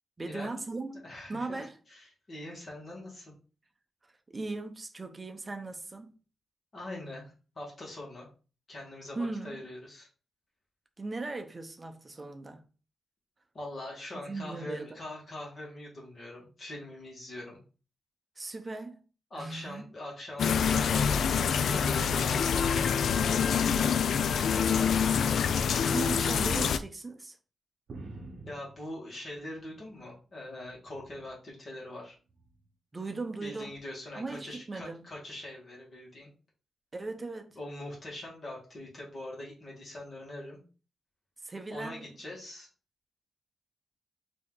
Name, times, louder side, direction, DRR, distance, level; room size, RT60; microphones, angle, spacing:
voice 1, 0.2-1.8 4.0-6.2 9.1-9.6 11.0-12.6 14.1-15.0 18.4-19.0 19.4-19.9 25.9-27.4 32.9-33.7 34.1-35.0 36.9-37.6 41.4-42.1, right 3 dB, 25° right, 0.7 m, -38 dB
voice 2, 1.0-1.6 1.9-3.3 6.7-8.3 8.7-10.1 13.5-17.6 19.3-21.4 21.7-25.2 28.5-32.2 33.4-36.3 37.6-40.6 41.7-42.7, left 1 dB, 40° left, 1.8 m, -43 dB
sound 1, 20.4-26.8, left 7 dB, 70° left, 0.3 m, -26 dB
sound 2, 27.9-30.1 30.5-31.4 32.3-32.7 33.7-33.8, right 2 dB, 55° right, 0.8 m, -49 dB
4.2 x 2.8 x 3.8 m
wide cardioid pair, 130°, 0 cm